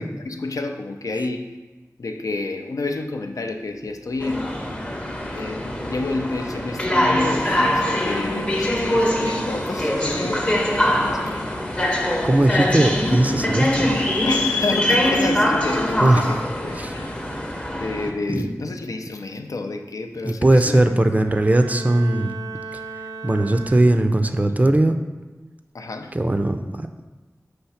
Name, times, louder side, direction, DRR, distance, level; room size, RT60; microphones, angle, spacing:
voice 1, 0.0-1.6 2.0-4.5 5.3-11.5 14.2-17.2 17.7-20.8 25.7-26.2, left 3 dB, 75° left, 6 dB, 0.5 m, -29 dB
sound 1, 4.2-18.1, left 1 dB, 20° left, 0.7 m, -23 dB
voice 2, 12.2-13.9 16.0-16.2 16.8-16.9 18.3-18.5 20.2-22.3 23.2-24.9 26.1-26.7, right 1 dB, 25° right, 7 dB, 0.4 m, -18 dB
Bowed string instrument, 21.1-24.5, right 4 dB, 80° right, 0.5 m, -37 dB
5.7 x 3.2 x 5.6 m, 1.2 s
wide cardioid pair, 75°, 6 cm